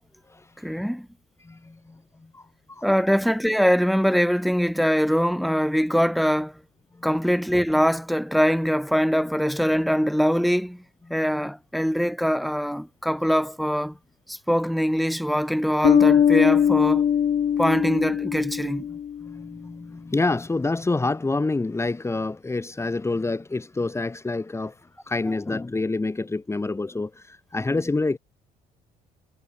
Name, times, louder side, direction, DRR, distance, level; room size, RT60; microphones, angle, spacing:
voice 1, 0.6-1.1 2.8-6.5 7.0-10.8 11.1-13.9 14.3-17.1 17.6-18.9 25.3-25.4 27.7-27.8, equal, ahead, 4.1 m, -23 dB
voice 2, 1.4-2.0 2.3-2.9 7.0-7.1 18.9-24.7 25.0-28.2, left 3 dB, 15° left, 3.3 m, -27 dB
Bass guitar, 15.8-19.3, left 8 dB, 45° left, 2.0 m, -21 dB
cardioid pair, 110°, 17 cm